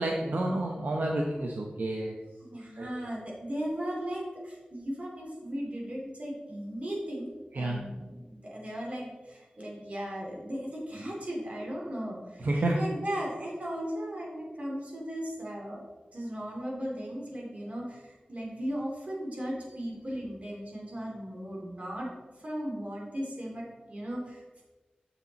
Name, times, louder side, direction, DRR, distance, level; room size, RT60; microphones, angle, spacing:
voice 1, 0.0-2.1 2.8-2.9 7.5-7.8 12.4-12.8, right 1 dB, 75° right, 0 dB, 0.8 m, -29 dB
voice 2, 2.4-15.8 16.1-22.1 22.4-24.6, equal, 50° right, -3 dB, 2.6 m, -37 dB
7.1 x 6.8 x 4.0 m, 1.2 s
wide cardioid pair, 80°, 3 cm